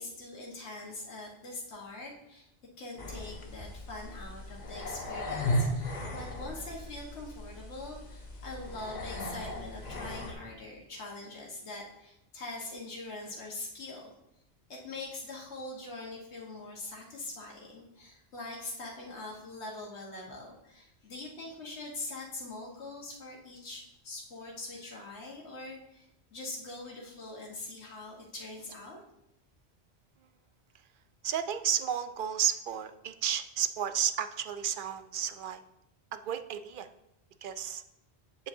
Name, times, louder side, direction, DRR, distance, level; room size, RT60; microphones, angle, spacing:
voice 1, 0.0-2.5 2.8-14.1 14.7-29.0, left 2 dB, 80° left, -3 dB, 1.6 m, -43 dB
sound 1, 3.0-10.3, left 1 dB, 45° left, 1.0 m, -36 dB
voice 2, 31.2-35.6 36.1-36.9 37.4-37.8, right 9 dB, 60° right, 10 dB, 0.6 m, -32 dB
8.4 x 7.3 x 2.7 m, 0.84 s
omnidirectional pair, 1.1 m